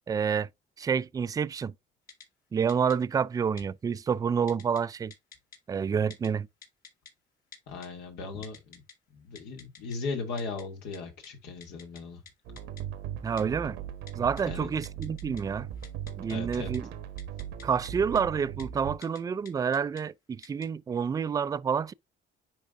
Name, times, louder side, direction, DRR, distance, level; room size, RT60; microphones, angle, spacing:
voice 1, 0.1-0.5 0.8-1.7 2.5-5.1 5.7-6.5 13.2-13.8 14.2-15.7 16.2-16.9 17.6-21.9, right 6 dB, 20° right, 0.3 m, -28 dB
Typing, 2.1-2.3 2.7-3.0 3.6-3.7 4.5-4.8 5.1-5.6 6.1-6.3 6.6-7.1 7.5-7.9 8.4-8.9 9.4-10.0 10.4-10.6 10.9-11.0 11.2-11.3 11.6-12.0 12.3-12.4 12.6-12.8 13.4-13.5 14.1-14.4 14.8-15.4 15.7-16.8 17.2-17.9 18.2-18.3 18.6-18.7 19.0-19.2 19.5-20.0 20.4-20.7, left 5 dB, 55° left, 2.9 m, -48 dB
voice 2, 7.7-8.8 9.1-12.2 14.4-14.7 16.3-16.7, left 4 dB, 85° left, 2.5 m, -37 dB
sound 1, 12.5-19.0, right 9 dB, 90° right, 1.3 m, -39 dB
10.0 x 3.7 x 2.5 m
cardioid pair, 110°, 17 cm